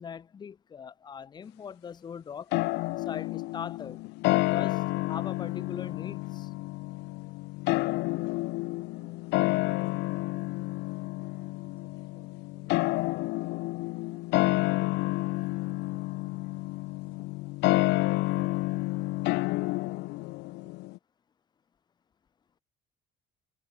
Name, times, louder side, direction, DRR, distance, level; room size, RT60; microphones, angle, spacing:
voice 1, 0.0-2.5 3.0-4.0 4.5-6.5, left 7 dB, 25° left, 0.4 m, -41 dB
sound 1, 2.5-21.0, left 22 dB, 85° left, 0.5 m, -30 dB
voice 2, 7.6-8.2 8.9-10.6 11.1-13.0 13.4-17.6 18.7-19.0 19.8-21.0, right 2 dB, 15° right, 5.0 m, -66 dB
cardioid pair, 110°, 17 cm